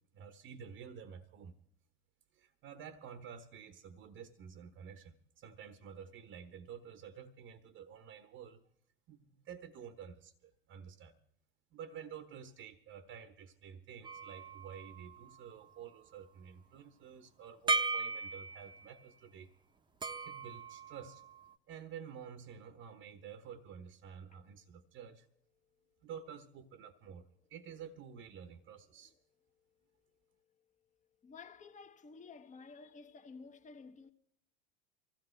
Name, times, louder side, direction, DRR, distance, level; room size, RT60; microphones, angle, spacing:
voice 1, 0.1-1.5 2.3-8.6 9.1-11.2 11.7-19.5 20.3-21.2 21.7-25.3 26.0-29.2, right 7 dB, 40° right, 1.2 m, -50 dB
sound 1, 14.0-15.7 17.7-18.9 20.0-21.5, right 3 dB, 15° right, 1.1 m, -38 dB
voice 2, 31.2-34.1, left 4 dB, 25° left, 1.4 m, -52 dB
24.0 x 16.0 x 3.3 m
hypercardioid pair, 90°, 30 cm